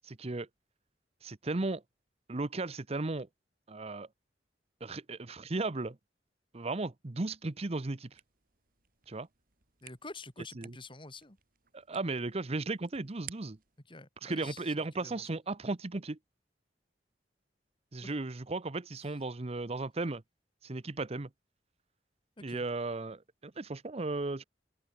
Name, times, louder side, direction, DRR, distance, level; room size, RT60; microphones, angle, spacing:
voice 1, 0.0-0.5 1.2-1.8 2.3-3.3 3.7-4.1 4.8-6.0 6.5-8.1 9.1-9.3 10.6-10.8 11.7-13.6 14.2-16.2 17.9-20.2 20.6-21.3 22.4-24.4, right 2 dB, 35° right, 0.8 m, -35 dB
sound 1, 8.1-13.8, right 11 dB, 55° right, 4.0 m, -55 dB
voice 2, 9.8-11.4 13.9-14.7 15.0-15.3 18.0-18.1 22.5-22.6, left 3 dB, 30° left, 5.0 m, -47 dB
head